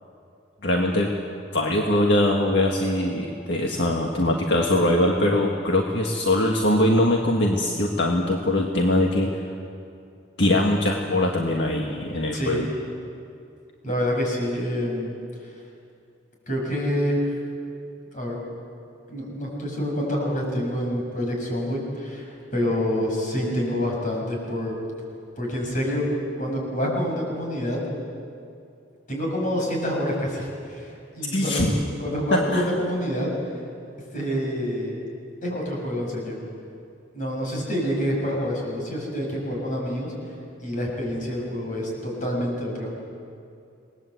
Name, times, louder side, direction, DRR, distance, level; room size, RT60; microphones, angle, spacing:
voice 1, 0.6-1.1 1.5-9.4 10.4-12.6 31.3-31.7 32.3-32.6, left 1 dB, 70° left, 0 dB, 1.8 m, -22 dB
voice 2, 13.8-15.2 16.5-17.3 18.1-18.4 19.1-24.8 25.4-27.8 29.1-33.3 34.1-35.0 35.4-36.4 37.1-40.1 40.6-43.0, equal, 45° left, -1 dB, 7.0 m, -27 dB
27.5 x 20.0 x 8.0 m, 2.6 s
head